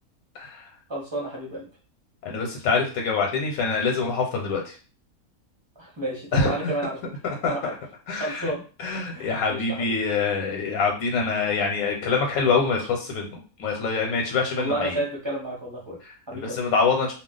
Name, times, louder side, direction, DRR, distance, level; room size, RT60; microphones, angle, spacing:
voice 1, 0.3-0.7 2.2-4.8 6.3-6.7 7.2-7.7 8.1-8.5 8.8-13.3 13.6-15.0 16.0-17.1, left 4 dB, 85° left, 1 dB, 1.1 m, -25 dB
voice 2, 0.9-1.6 5.8-7.0 7.4-7.7 8.2-8.6 8.9-10.0 14.6-16.0 16.3-16.6, right 1 dB, 25° right, -4 dB, 0.7 m, -31 dB
2.4 x 2.3 x 3.7 m, 0.36 s
omnidirectional pair, 1.5 m